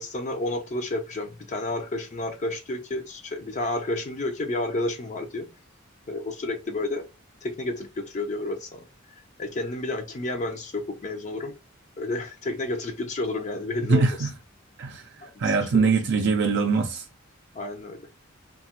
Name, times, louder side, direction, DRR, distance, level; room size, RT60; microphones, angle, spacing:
voice 1, 0.0-5.5 6.1-7.0 7.4-8.8 9.4-11.5 12.0-14.3 15.2-15.9 17.5-18.0, left 2 dB, 35° left, 0.5 m, -31 dB
voice 2, 13.9-14.3 14.8-15.0 15.4-17.0, right 4 dB, 55° right, 0.4 m, -22 dB
2.8 x 2.3 x 2.8 m
head